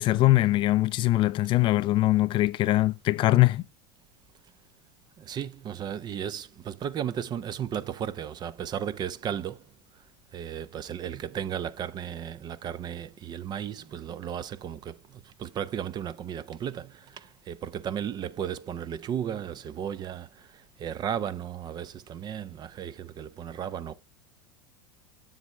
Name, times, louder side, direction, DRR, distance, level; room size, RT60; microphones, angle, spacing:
voice 1, 0.0-3.6, left 17 dB, 40° left, 0.5 m, -22 dB
voice 2, 5.2-9.6 10.3-23.9, right 9 dB, 30° right, 0.6 m, -35 dB
7.5 x 7.2 x 3.1 m
figure-of-eight pair, 80°, 13 cm